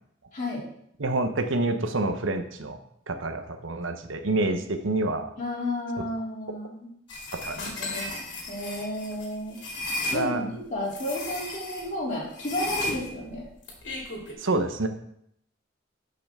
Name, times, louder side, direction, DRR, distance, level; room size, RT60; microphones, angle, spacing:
voice 1, 0.3-0.6 5.4-6.9 7.5-8.1 8.5-9.6 10.1-13.5, left 1 dB, 40° left, -5 dB, 3.0 m, -32 dB
voice 2, 1.0-2.8 3.1-5.3 7.3-7.6 10.1-10.4 14.4-14.9, right 2 dB, 85° right, 7 dB, 0.9 m, -27 dB
sound 1, 7.1-10.2 10.9-11.9 12.3-14.3, left 2 dB, 65° left, 2.8 m, -34 dB
12.0 x 5.8 x 3.6 m, 0.72 s
head